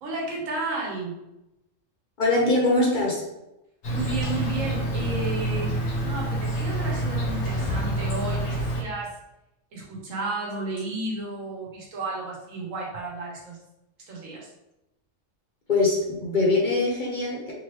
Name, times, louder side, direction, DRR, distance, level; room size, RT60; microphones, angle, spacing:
voice 1, 0.0-1.2 3.9-9.2 9.7-13.6 14.1-14.5, right 2 dB, 85° right, -2 dB, 1.3 m, -33 dB
voice 2, 2.2-3.2 15.7-17.5, left 2 dB, 50° left, -2 dB, 0.7 m, -22 dB
Insect, 3.8-8.8, right 1 dB, 65° left, 1.2 m, -27 dB
3.6 x 3.1 x 3.0 m, 0.91 s
omnidirectional pair, 1.3 m